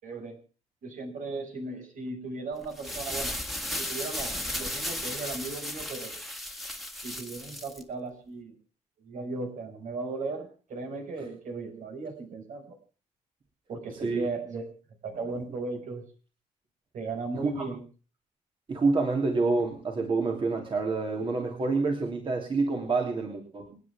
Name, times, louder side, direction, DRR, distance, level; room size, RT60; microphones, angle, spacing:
voice 1, 0.0-0.4 0.8-3.4 3.7-6.1 6.9-8.6 9.0-12.8 13.7-14.6 15.0-16.0 16.9-17.8, right 3 dB, 70° right, 3 dB, 6.0 m, -36 dB
sound 1, 2.6-7.8, left 1 dB, ahead, 2.2 m, -35 dB
voice 2, 17.3-17.6 18.7-23.8, right 3 dB, 40° right, 2 dB, 3.2 m, -27 dB
28.0 x 9.8 x 3.6 m, 0.38 s
cardioid pair, 115°, 13 cm